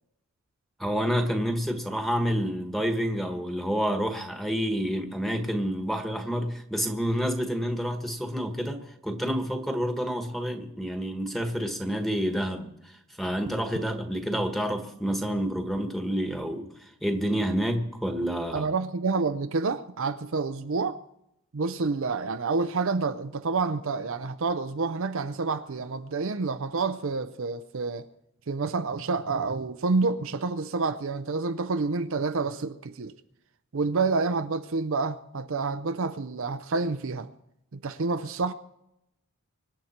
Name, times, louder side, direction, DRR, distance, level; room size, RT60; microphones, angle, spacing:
voice 1, 0.8-16.7 17.0-18.7, equal, ahead, 1.4 m, -29 dB
voice 2, 18.5-21.0 21.5-28.0 28.5-33.1 33.7-37.3 37.7-38.5, right 4 dB, 60° right, 0.6 m, -28 dB
25.0 x 10.5 x 4.4 m
head